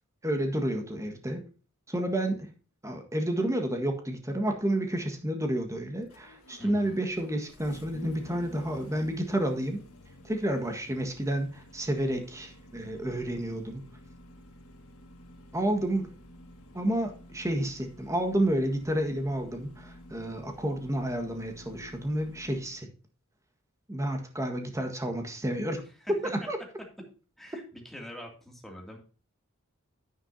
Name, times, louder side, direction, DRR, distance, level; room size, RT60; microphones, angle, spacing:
voice 1, 0.2-1.4 1.9-2.5 2.8-9.8 10.2-13.8 15.5-16.1 16.7-22.9 23.9-25.8 26.1-26.2 26.5-26.6, right 1 dB, 15° right, 4 dB, 1.6 m, -30 dB
Engine starting, 4.4-22.8, left 1 dB, 90° left, 1.6 m, -52 dB
voice 2, 6.6-7.0 26.0-26.1 27.4-29.0, equal, ahead, 0 dB, 2.5 m, -44 dB
9.9 x 9.6 x 2.8 m, 0.36 s
head